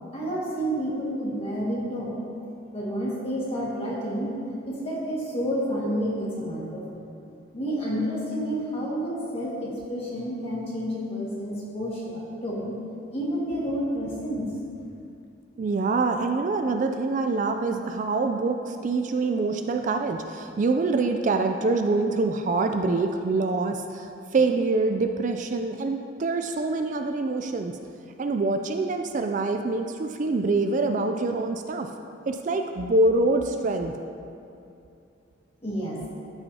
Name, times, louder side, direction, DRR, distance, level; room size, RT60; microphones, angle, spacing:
voice 1, 0.1-2.2 2.7-4.3 4.7-7.0 7.5-12.7 13.1-14.5 35.6-36.0, equal, 30° left, -6 dB, 1.8 m, -30 dB
voice 2, 15.6-27.8 28.2-31.9 32.3-33.9, right 3 dB, 40° right, 5 dB, 0.3 m, -25 dB
13.5 x 5.6 x 2.8 m, 2.6 s
head